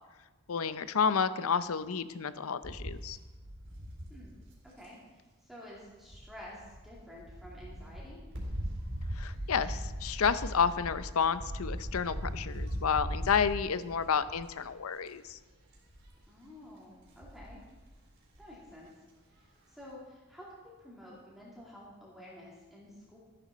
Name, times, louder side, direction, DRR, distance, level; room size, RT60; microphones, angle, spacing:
voice 1, 0.5-3.2 9.1-15.4, left 6 dB, 75° left, 14 dB, 0.6 m, -30 dB
sound 1, 2.6-4.9 6.1-14.7 15.1-15.4 15.7-16.2 17.0-17.9 18.4-18.5 18.7-18.8, equal, 60° right, 4.0 m, -40 dB
voice 2, 4.6-8.2 16.3-17.6 18.4-18.9 19.3-20.5 20.8-23.2, left 1 dB, ahead, -6 dB, 2.6 m, -50 dB
14.0 x 11.0 x 4.2 m, 1.2 s
head